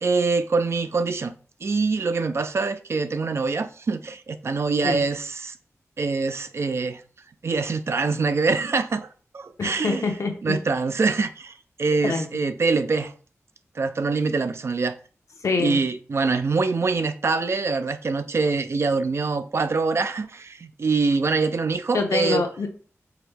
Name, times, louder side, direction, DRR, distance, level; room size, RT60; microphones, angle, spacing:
voice 1, 0.0-1.3 1.6-5.6 6.0-7.0 7.4-9.1 9.3-10.1 10.4-11.5 11.8-13.1 13.8-14.9 15.6-22.4, right 4 dB, 55° right, 0.4 m, -24 dB
voice 2, 9.6-10.6 12.0-12.3 15.4-15.8 21.9-22.7, left 4 dB, 75° left, 0.7 m, -25 dB
4.6 x 2.0 x 3.4 m
wide cardioid pair, 80°, 5 cm